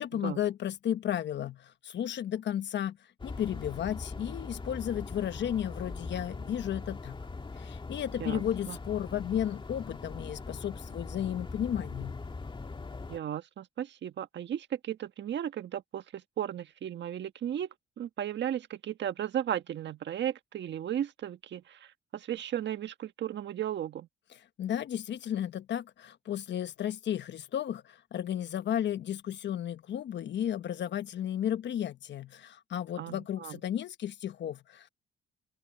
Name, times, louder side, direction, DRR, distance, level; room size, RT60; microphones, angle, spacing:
voice 1, 0.0-3.0 3.2-7.2 7.6-12.2 24.6-34.9, left 10 dB, 65° left, 1.1 m, -33 dB
sound 1, 3.2-13.2, left 3 dB, 25° left, 2.0 m, -41 dB
voice 2, 8.2-8.8 13.1-17.7 18.0-24.1 33.0-33.6, right 10 dB, 65° right, 1.4 m, -35 dB
cardioid pair, 90°, 20 cm